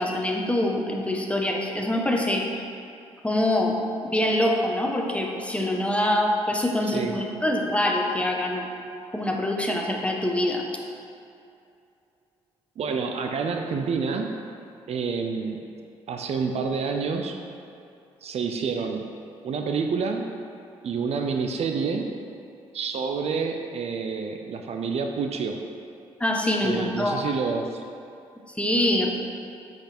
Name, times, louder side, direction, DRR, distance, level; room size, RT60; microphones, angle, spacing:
voice 1, 0.0-2.5 3.2-8.7 9.1-10.7 26.2-27.2 28.6-29.1, left 1 dB, 10° left, 1 dB, 1.2 m, -24 dB
voice 2, 12.8-14.3 14.9-15.6 16.1-17.4 18.2-19.1 19.4-20.3 20.8-22.1 22.7-25.6 26.6-27.8, right 5 dB, 60° right, 4 dB, 0.7 m, -28 dB
7.6 x 5.9 x 4.4 m, 2.6 s
supercardioid pair, 60°, 12 cm